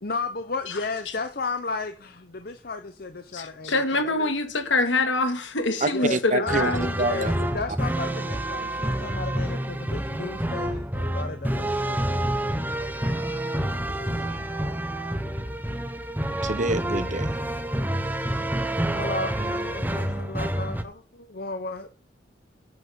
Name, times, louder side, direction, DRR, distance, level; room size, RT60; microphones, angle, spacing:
voice 1, 0.0-4.3 5.9-6.5 7.0-12.3 18.9-21.9, left 3 dB, 50° left, 0.9 m, -34 dB
voice 2, 3.3-6.9, left 2 dB, 80° left, 2.4 m, -25 dB
voice 3, 5.8-6.7 7.0-7.3 13.8-14.5 16.3-17.4 18.2-18.3 19.9-20.1, right 2 dB, 40° right, 1.0 m, -28 dB
sound 1, 6.5-20.8, right 1 dB, 10° right, 1.1 m, -28 dB
9.8 x 8.1 x 7.2 m
head